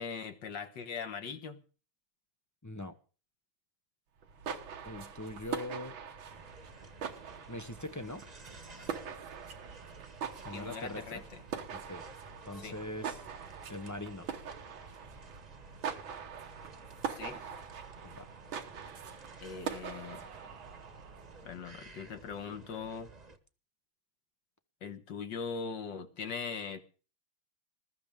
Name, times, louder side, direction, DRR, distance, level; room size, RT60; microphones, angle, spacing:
voice 1, 0.0-1.6 10.5-11.4 12.6-12.8 17.1-17.5 19.4-20.2 21.5-23.1 24.8-26.8, left 5 dB, 65° left, 2.1 m, -40 dB
voice 2, 2.6-3.0 4.8-6.0 7.5-8.2 10.4-11.2 11.7-12.1 12.4-13.2 13.7-14.3 18.0-18.3, left 1 dB, 25° left, 0.3 m, -42 dB
sound 1, 4.2-21.5, right 7 dB, 85° right, 2.1 m, -43 dB
sound 2, 6.3-23.4, right 3 dB, 25° right, 1.1 m, -54 dB
21.0 x 13.5 x 3.6 m
omnidirectional pair, 2.1 m